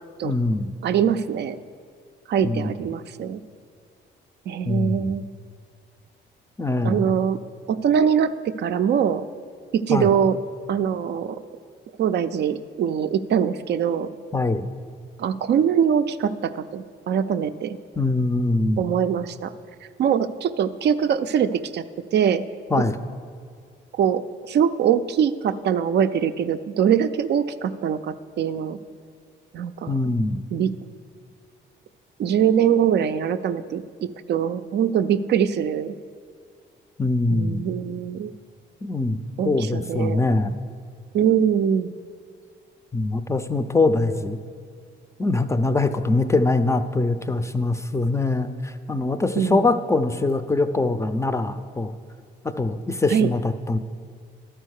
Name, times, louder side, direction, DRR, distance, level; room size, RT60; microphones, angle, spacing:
voice 1, 0.2-0.7 2.4-2.8 4.6-5.1 6.6-7.1 9.9-10.1 14.3-14.7 18.0-18.8 22.7-23.0 29.9-30.4 37.0-37.7 38.8-39.2 39.4-40.5 42.9-44.4 45.2-51.9 52.6-53.8, left 2 dB, 15° left, 10 dB, 0.4 m, -23 dB
voice 2, 0.8-1.6 2.3-3.4 4.5-5.2 6.8-7.4 7.7-9.3 9.7-10.4 10.7-11.4 12.0-14.1 15.2-17.8 18.8-19.5 20.0-21.8 22.1-22.4 23.9-28.8 29.5-29.9 30.5-30.7 32.2-35.9 37.3-38.3 39.4-40.2 41.1-42.0 49.4-49.7 53.1-53.3, right 8 dB, 60° right, 11 dB, 0.4 m, -23 dB
12.0 x 4.6 x 6.4 m, 2.1 s
cardioid pair, 90°, 20 cm